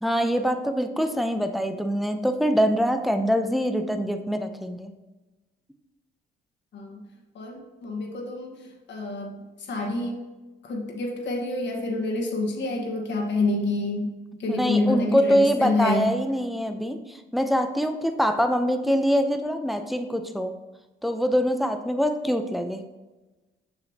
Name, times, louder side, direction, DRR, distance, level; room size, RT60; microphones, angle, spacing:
voice 1, 0.0-4.9 14.5-20.5 21.0-22.8, equal, ahead, 6 dB, 0.6 m, -24 dB
voice 2, 7.3-10.2 10.6-14.1 14.4-16.2, left 2 dB, 65° left, 2 dB, 1.4 m, -28 dB
6.8 x 6.3 x 2.8 m, 1.1 s
cardioid pair, 90°, 20 cm